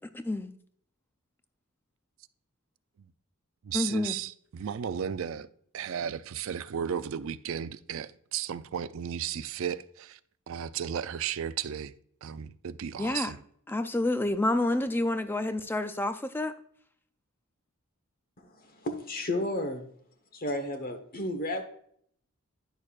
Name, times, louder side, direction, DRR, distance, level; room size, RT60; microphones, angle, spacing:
voice 1, 0.1-0.5 3.7-4.1 13.0-13.3 13.7-16.5, left 2 dB, 10° left, 0.4 m, -28 dB
voice 2, 3.6-5.5 5.7-10.2 10.5-11.9 12.2-13.4, right 8 dB, 60° right, 0.4 m, -34 dB
voice 3, 18.4-19.8 20.3-21.6, left 1 dB, 40° left, 1.1 m, -33 dB
10.0 x 6.5 x 2.4 m
head